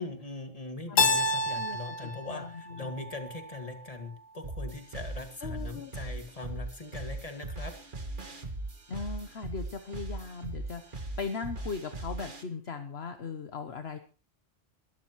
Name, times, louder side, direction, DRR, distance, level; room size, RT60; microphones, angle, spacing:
voice 1, 0.0-7.7, left 3 dB, 30° left, 5 dB, 2.1 m, -41 dB
Keyboard (musical), 1.0-3.8, left 2 dB, 80° left, 1.7 m, -29 dB
voice 2, 1.5-3.0 5.4-5.9 8.9-14.0, left 5 dB, 55° left, 7 dB, 1.2 m, -39 dB
sound 1, 4.4-12.4, right 2 dB, 40° right, 1.8 m, -39 dB
22.5 x 13.0 x 3.1 m, 0.35 s
omnidirectional pair, 1.3 m